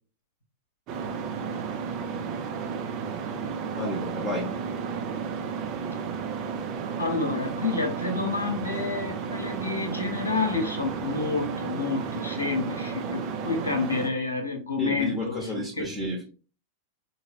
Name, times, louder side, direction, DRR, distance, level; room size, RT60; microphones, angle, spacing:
sound 1, 0.9-14.1, right 6 dB, 40° right, 0.7 m, -33 dB
voice 1, 3.8-4.5 14.8-16.2, left 1 dB, 5° left, 1.2 m, -31 dB
voice 2, 7.0-16.1, left 4 dB, 75° left, 0.8 m, -29 dB
4.3 x 2.4 x 3.4 m
figure-of-eight pair, 90°, 0 cm